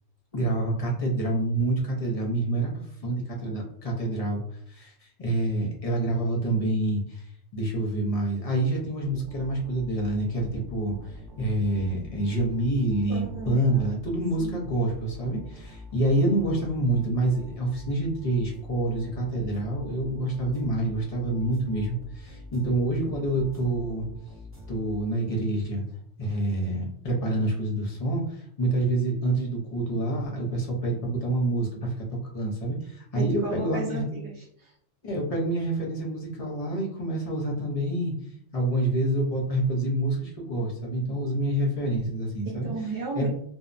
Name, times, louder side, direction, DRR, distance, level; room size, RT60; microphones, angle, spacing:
voice 1, 0.3-2.7 3.0-4.4 4.7-24.1 24.7-25.8 26.2-32.1 32.3-34.0 35.0-38.1 38.5-42.7 43.2-43.3, right 1 dB, 40° left, -2 dB, 0.5 m, -27 dB
sound 1, 9.0-25.5, left 2 dB, 15° right, 0.6 m, -45 dB
voice 2, 13.1-13.9 14.4-14.6 26.2-26.4 33.1-34.7 42.4-43.3, right 4 dB, 45° right, -9 dB, 1.0 m, -35 dB
2.7 x 2.1 x 2.5 m, 0.67 s
omnidirectional pair, 1.3 m